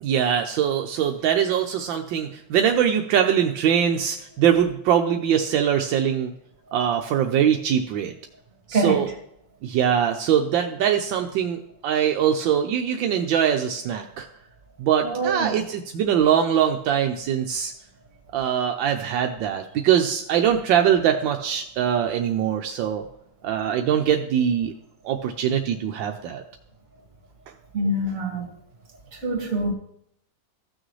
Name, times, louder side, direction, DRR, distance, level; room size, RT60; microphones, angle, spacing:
voice 1, 0.0-6.3 6.7-8.1 8.7-9.1 9.6-14.3 14.8-17.7 18.3-23.0 23.4-24.7 25.0-26.4, right 9 dB, 80° right, 1.4 m, -22 dB
voice 2, 8.7-9.1 15.0-15.6 27.7-28.5 29.2-29.7, right 2 dB, 45° right, 2.2 m, -25 dB
15.5 x 6.3 x 3.2 m
omnidirectional pair, 2.0 m